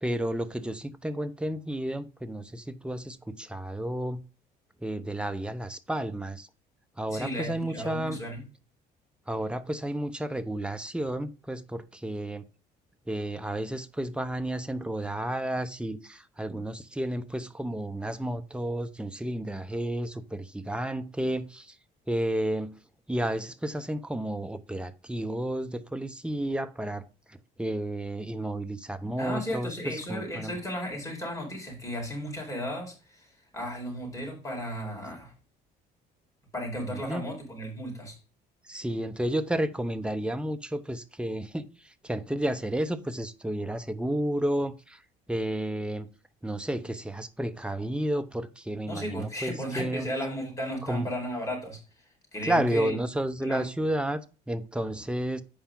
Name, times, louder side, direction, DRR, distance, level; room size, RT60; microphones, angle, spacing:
voice 1, 0.0-4.2 4.8-6.5 7.0-8.2 9.3-12.4 13.1-21.8 22.1-22.7 23.1-30.6 36.8-37.3 38.6-45.0 45.3-46.1 46.4-50.1 50.8-51.1 52.4-55.4, right 1 dB, 5° right, 0.8 m, -32 dB
voice 2, 7.1-8.4 29.2-33.3 33.5-35.3 36.5-38.1 48.8-51.8 52.3-53.0 53.4-53.7, equal, 20° left, 4.6 m, -34 dB
8.5 x 5.7 x 3.8 m
cardioid pair, 110°, 17 cm